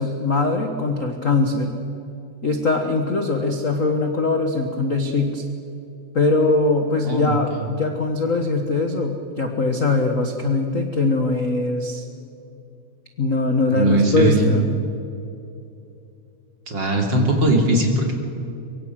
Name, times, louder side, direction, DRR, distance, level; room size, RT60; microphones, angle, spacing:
voice 1, 0.0-1.7 2.4-5.4 6.1-12.0 13.2-14.7, left 3 dB, 40° left, 4 dB, 1.2 m, -21 dB
voice 2, 7.0-7.6 13.7-14.5 16.7-18.1, right 1 dB, 35° right, 1 dB, 3.4 m, -19 dB
24.0 x 23.5 x 6.1 m, 2.7 s
omnidirectional pair, 3.5 m